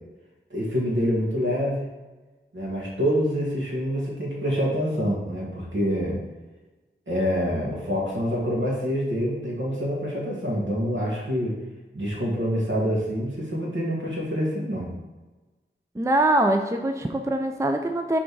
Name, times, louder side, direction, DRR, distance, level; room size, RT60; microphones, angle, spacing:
voice 1, 0.5-1.8 2.5-6.2 7.1-11.5 11.9-14.9, equal, 70° right, -4 dB, 2.0 m, -26 dB
voice 2, 16.0-18.2, right 1 dB, 15° right, 5 dB, 0.5 m, -23 dB
6.1 x 3.5 x 4.7 m, 1.2 s
cardioid pair, 45°, 20 cm